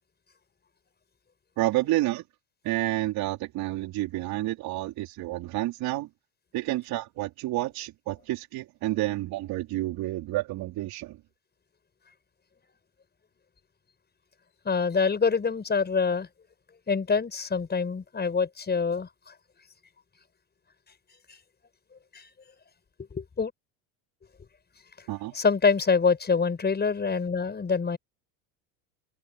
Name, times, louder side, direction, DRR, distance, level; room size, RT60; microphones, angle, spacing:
voice 1, 1.6-2.2 2.6-6.1 6.5-11.2 25.1-25.4, right 17 dB, 60° right, 4.3 m, -29 dB
voice 2, 14.6-16.3 16.9-19.1 22.1-22.3 23.1-23.5 25.3-28.0, left 5 dB, 25° left, 6.4 m, -25 dB
supercardioid pair, 95°, 41 cm